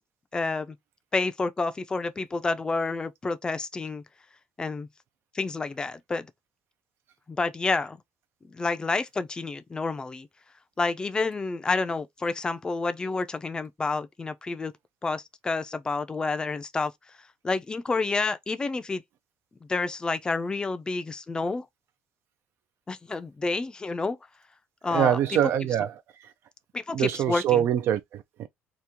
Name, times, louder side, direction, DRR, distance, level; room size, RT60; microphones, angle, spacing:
voice 1, 0.3-0.8 1.1-4.0 4.6-4.9 5.3-6.3 7.3-8.0 8.5-10.3 10.8-14.7 15.0-16.9 17.4-19.0 19.6-21.7 22.9-24.2 24.8-25.2 26.7-27.6, left 3 dB, 20° left, 0.4 m, -29 dB
voice 2, 24.9-26.3 26.9-28.5, right 10 dB, 60° right, 0.4 m, -25 dB
2.9 x 2.4 x 3.5 m
cardioid pair, 125°, 5 cm